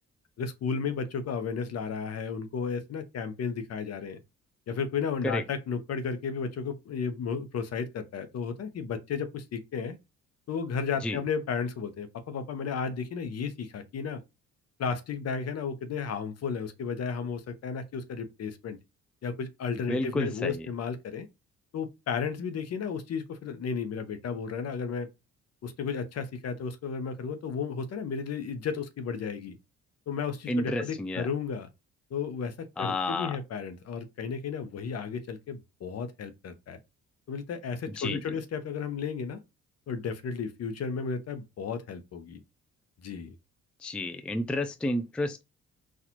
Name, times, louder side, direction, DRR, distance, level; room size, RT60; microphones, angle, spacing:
voice 1, 0.4-4.2 4.7-10.0 10.5-14.2 14.8-18.8 19.2-21.3 21.7-25.1 25.6-29.6 30.1-31.7 32.1-36.8 37.3-39.4 39.9-42.4 43.0-43.3, left 6 dB, 55° left, 0.8 m, -33 dB
voice 2, 19.7-20.7 30.5-31.3 32.8-33.4 37.9-38.4 43.8-45.4, left 1 dB, 5° left, 0.3 m, -31 dB
4.2 x 2.5 x 2.9 m
cardioid pair, 90°, 30 cm